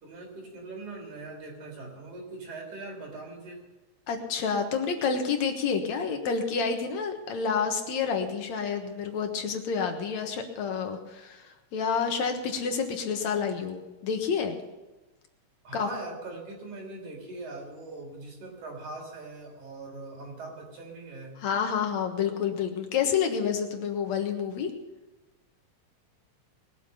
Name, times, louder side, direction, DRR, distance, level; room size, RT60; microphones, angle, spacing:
voice 1, 0.0-3.6 15.6-21.4, right 2 dB, 85° right, 0 dB, 5.1 m, -41 dB
voice 2, 4.1-14.6 15.7-15.9 21.4-24.7, left 6 dB, 70° left, 5 dB, 2.6 m, -29 dB
21.0 x 7.4 x 6.9 m, 1.1 s
omnidirectional pair, 3.3 m